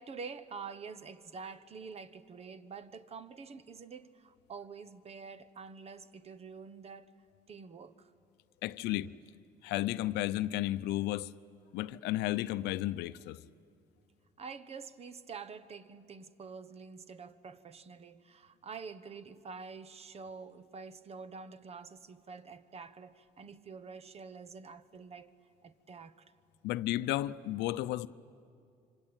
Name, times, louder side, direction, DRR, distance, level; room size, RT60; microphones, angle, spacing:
voice 1, 0.0-7.1 7.5-8.1 14.4-25.3 25.6-26.3, right 5 dB, 35° right, 1.1 m, -47 dB
voice 2, 8.6-9.1 9.6-11.3 11.7-13.4 26.6-28.1, left 15 dB, 85° left, 0.6 m, -33 dB
26.0 x 25.5 x 9.0 m
cardioid pair, 110°, 17 cm